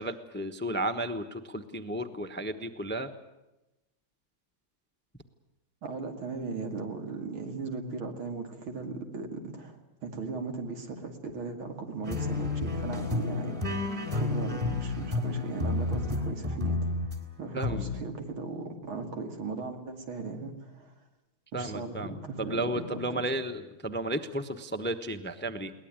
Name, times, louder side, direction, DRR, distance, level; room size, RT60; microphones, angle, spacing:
voice 1, 0.0-3.1 17.5-17.9 21.5-25.7, right 1 dB, 10° left, 9 dB, 0.6 m, -33 dB
voice 2, 5.8-16.9 17.4-20.9 21.5-23.2, right 4 dB, 85° right, 4 dB, 3.3 m, -37 dB
sound 1, 12.0-17.2 17.6-18.0, left 3 dB, 25° right, 3.9 m, -30 dB
22.0 x 19.0 x 9.0 m, 0.95 s
omnidirectional pair, 2.2 m